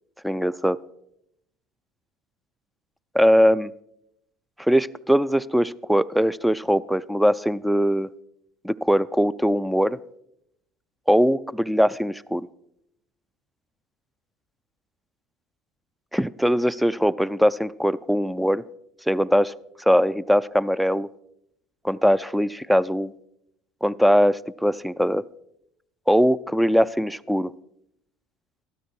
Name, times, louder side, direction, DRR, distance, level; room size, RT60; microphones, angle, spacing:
voice 1, 0.2-0.8 3.1-3.7 4.6-8.1 8.6-10.0 11.1-12.5 16.1-18.6 19.1-19.5 19.9-21.1 21.8-23.1 23.8-25.2 26.1-27.5, equal, ahead, 18 dB, 0.4 m, -21 dB
12.5 x 12.5 x 4.6 m, 0.77 s
hypercardioid pair, 65°, 0 cm